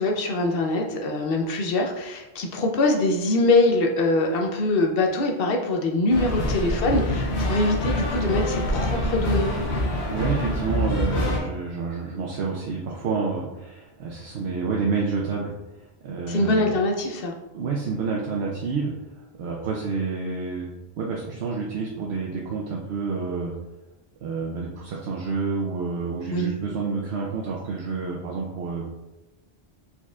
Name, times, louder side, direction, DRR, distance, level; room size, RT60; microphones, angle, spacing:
voice 1, 0.0-9.5 16.3-17.3 26.3-26.5, left 2 dB, 65° left, 2 dB, 0.8 m, -23 dB
sound 1, 6.1-11.4, left 1 dB, 85° left, 1.3 m, -25 dB
voice 2, 10.1-15.5 16.0-16.7 17.1-17.2 17.5-18.9 19.4-20.7 21.0-23.5 24.2-28.9, right 4 dB, 75° right, -2 dB, 0.9 m, -29 dB
4.6 x 4.2 x 2.3 m, 1.0 s
omnidirectional pair, 1.1 m